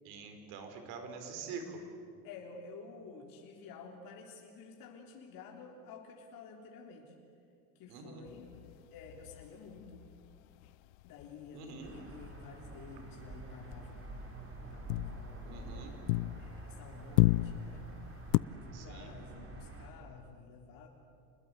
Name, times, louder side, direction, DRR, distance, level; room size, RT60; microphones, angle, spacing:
voice 1, 0.0-1.8 7.9-8.2 11.5-11.9 15.4-16.0 18.7-19.1, right 5 dB, 65° right, 6 dB, 4.7 m, -45 dB
voice 2, 2.2-7.1 7.7-8.5 8.9-10.0 11.0-14.3 14.7-17.9 18.5-20.9, left 5 dB, 55° left, 0 dB, 3.5 m, -51 dB
sound 1, 8.3-12.0 12.2-12.6 12.9-16.7 17.0-18.4, left 21 dB, 85° left, 0.6 m, -33 dB
sound 2, 11.8-19.9, right 2 dB, 35° right, 5.3 m, -47 dB
28.5 x 20.5 x 8.2 m, 2.3 s
supercardioid pair, 100°, 40 cm